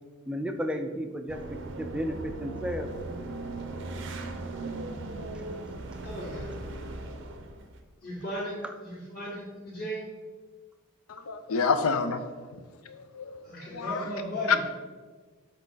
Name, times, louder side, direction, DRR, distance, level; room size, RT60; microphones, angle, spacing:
voice 1, 0.3-2.9 4.6-4.8 8.6-8.7, equal, 5° right, 6 dB, 0.3 m, -33 dB
sound 1, 1.3-7.8, right 2 dB, 55° right, 0.6 m, -38 dB
voice 2, 6.0-6.5 8.0-10.0 13.4-14.6, equal, 45° left, -11 dB, 1.9 m, -36 dB
voice 3, 11.1-12.3 12.5-12.6 12.9-13.3 13.7-14.1, left 4 dB, 80° left, 10 dB, 0.5 m, -29 dB
7.2 x 4.1 x 3.9 m, 1.4 s
head